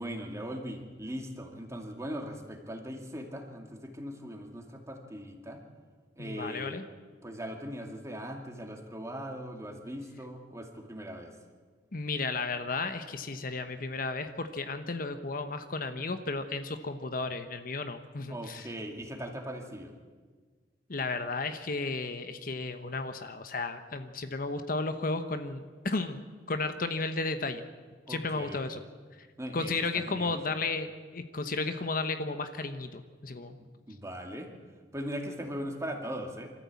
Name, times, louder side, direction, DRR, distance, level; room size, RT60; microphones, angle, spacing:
voice 1, 0.0-5.6 6.2-6.8 7.2-11.4 18.3-19.9 28.1-28.7 29.4-30.4 33.6-34.5 34.9-36.5, equal, 15° right, 3 dB, 2.3 m, -39 dB
voice 2, 6.2-6.8 11.9-18.7 20.9-26.2 26.5-27.6 28.1-28.8 29.5-33.6, left 3 dB, 50° left, 9 dB, 1.0 m, -33 dB
24.5 x 13.5 x 8.4 m, 1.5 s
head